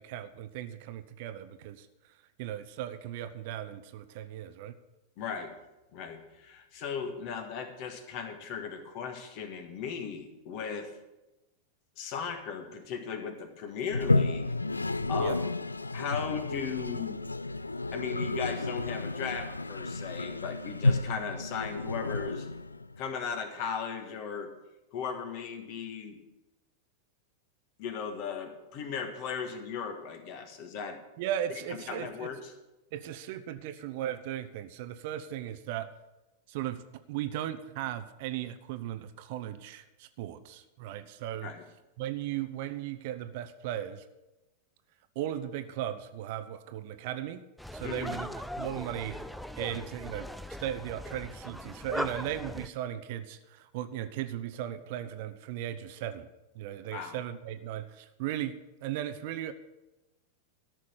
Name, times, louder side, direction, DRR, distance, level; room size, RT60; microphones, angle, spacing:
voice 1, 0.0-1.9 2.4-4.8 15.2-15.4 31.2-32.3 32.9-35.9 36.5-36.8 37.1-41.5 42.0-44.0 45.1-47.4 47.7-48.3 48.6-49.2 49.6-50.3 50.6-56.3 56.5-59.5, right 11 dB, 50° right, 11 dB, 0.7 m, -37 dB
voice 2, 5.2-5.5 5.9-10.9 12.0-14.5 15.1-15.4 15.9-17.2 17.9-22.5 23.0-24.5 24.9-26.2 27.8-31.0 31.7-32.5 41.4-41.7 47.8-48.2 56.9-57.2, left 6 dB, 45° left, 6 dB, 1.7 m, -37 dB
Toilet flush, 13.9-23.0, left 2 dB, 80° left, 0.3 m, -31 dB
sound 1, 47.6-52.7, equal, ahead, 0.5 m, -39 dB
13.5 x 6.2 x 8.5 m, 1.0 s
figure-of-eight pair, 90°, 0 cm